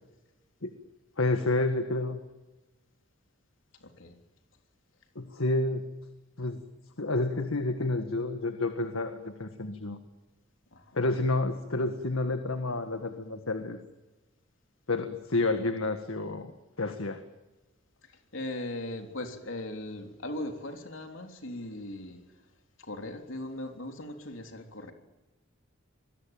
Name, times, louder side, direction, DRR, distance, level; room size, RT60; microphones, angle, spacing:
voice 1, 1.2-2.2 5.2-5.9 6.4-6.6 7.0-10.0 10.9-13.8 14.9-16.5 16.8-17.2, left 2 dB, 85° left, 7 dB, 1.7 m, -29 dB
voice 2, 3.8-4.1 10.7-11.0 18.0-22.2 22.8-24.9, left 1 dB, 70° left, 5 dB, 3.4 m, -39 dB
26.5 x 21.5 x 9.1 m, 1.1 s
head